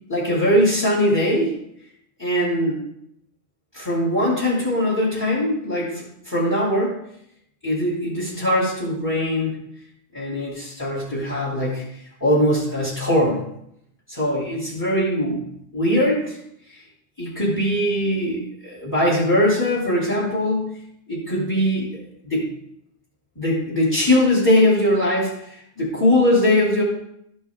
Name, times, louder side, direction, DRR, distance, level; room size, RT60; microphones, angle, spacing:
voice 1, 0.1-1.6 2.2-2.8 3.7-7.0 7.6-9.6 10.1-11.8 12.2-13.4 14.1-15.4 15.7-16.4 16.7-16.8 17.2-20.7 21.1-22.0 22.2-22.5 23.4-26.8, left 1 dB, 15° left, -8 dB, 2.5 m, -21 dB
13.5 x 5.3 x 3.5 m, 0.74 s
omnidirectional pair, 1.3 m